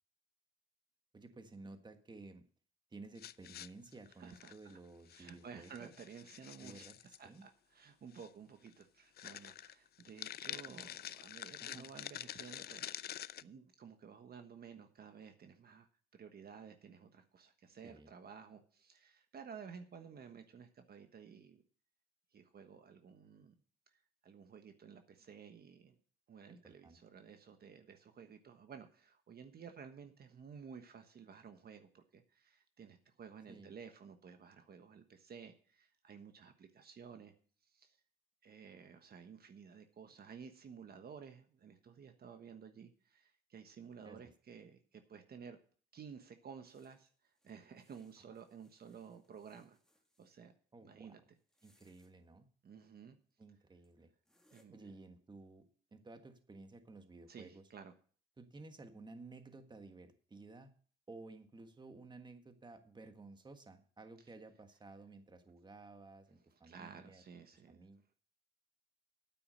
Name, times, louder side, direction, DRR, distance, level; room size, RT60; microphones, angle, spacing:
voice 1, 1.1-2.4 2.9-5.9 6.6-7.4 10.7-10.8 11.6-11.9 17.8-18.1 26.5-27.0 33.5-33.7 44.0-44.2 50.7-51.2 51.6-52.5 53.4-54.1 54.7-55.6 55.9-57.6 58.4-60.7 61.1-67.2 67.7-68.1, right 3 dB, 20° right, 7 dB, 1.5 m, -54 dB
sound 1, 3.2-4.7 5.1-5.3 5.6-7.2 8.1-8.3 8.7-8.8 9.2-13.4, left 11 dB, 55° left, 0.4 m, -47 dB
voice 2, 4.2-4.5 5.1-6.9 7.2-13.2 13.4-15.9 16.1-21.6 22.3-23.5 23.9-26.0 26.3-37.3 37.6-38.0 38.4-45.6 45.9-49.8 50.2-50.5 50.8-51.2 52.6-53.2 54.5-54.9 57.3-57.9 66.6-67.8, right 6 dB, 50° right, 7 dB, 1.3 m, -54 dB
sound 2, 46.6-50.4 51.4-52.1 53.3-53.4 53.8-53.9 54.2-54.6, left 1 dB, 5° left, 2.0 m, -75 dB
9.3 x 8.6 x 6.4 m, 0.43 s
cardioid pair, 90°, 20 cm